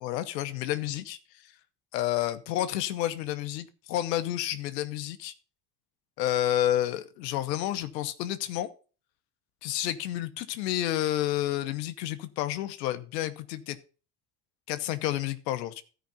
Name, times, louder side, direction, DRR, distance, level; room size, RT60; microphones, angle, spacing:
voice 1, 0.0-1.5 1.9-5.3 6.2-8.7 9.6-13.8 14.7-15.8, left 13 dB, 85° left, 11 dB, 1.0 m, -30 dB
13.0 x 5.2 x 5.6 m, 0.36 s
hypercardioid pair, 65°, 48 cm